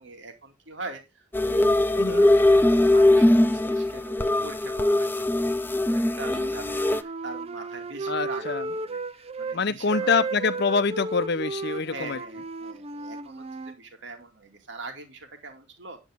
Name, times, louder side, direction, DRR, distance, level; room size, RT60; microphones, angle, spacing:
voice 1, 0.0-1.7 2.1-10.1 11.9-16.0, right 3 dB, 75° right, 2.6 m, -42 dB
sound 1, 1.3-7.0, left 1 dB, 10° left, 0.5 m, -21 dB
voice 2, 1.9-2.3 8.1-8.6 9.5-12.2, left 5 dB, 65° left, 0.8 m, -25 dB
Wind instrument woodwind instrument, 6.2-9.6 9.9-13.8, right 3 dB, 35° right, 0.7 m, -34 dB
9.6 x 8.9 x 3.6 m
head